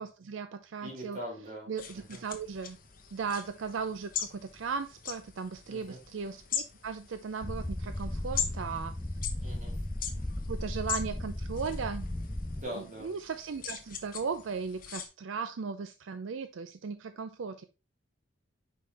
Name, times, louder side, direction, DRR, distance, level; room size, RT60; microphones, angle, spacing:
voice 1, 0.0-1.2 1.7-2.8 3.1-9.0 10.5-12.1 12.7-17.6, right 5 dB, 75° right, 10 dB, 0.4 m, -37 dB
voice 2, 0.8-2.2 5.7-6.0 9.3-9.7 12.5-13.1, equal, 35° right, -2 dB, 2.9 m, -42 dB
sound 1, 1.8-15.1, left 8 dB, 45° left, 1.0 m, -41 dB
sound 2, 7.4-12.6, left 1 dB, 10° left, 0.3 m, -36 dB
5.5 x 5.2 x 3.3 m, 0.30 s
head